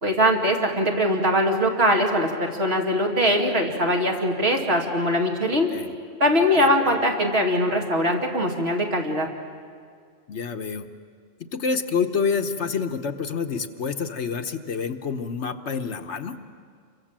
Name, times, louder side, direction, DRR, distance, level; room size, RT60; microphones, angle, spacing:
voice 1, 0.0-5.7 6.2-9.3, equal, 50° right, 0 dB, 2.8 m, -22 dB
voice 2, 10.3-10.9 11.5-16.4, left 5 dB, 65° left, 7 dB, 1.3 m, -27 dB
28.5 x 23.5 x 7.5 m, 2.1 s
omnidirectional pair, 1.3 m